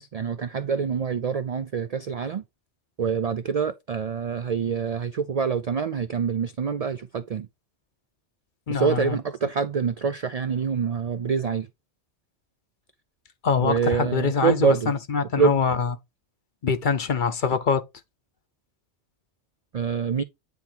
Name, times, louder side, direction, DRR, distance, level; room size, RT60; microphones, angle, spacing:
voice 1, 0.0-2.4 3.0-7.5 8.7-11.7 13.6-14.9 15.4-15.6 19.7-20.2, right 6 dB, 55° right, 0.4 m, -26 dB
voice 2, 8.7-9.2 13.4-15.9 16.6-17.8, left 5 dB, 50° left, 0.8 m, -24 dB
9.3 x 3.5 x 4.3 m
omnidirectional pair, 1.2 m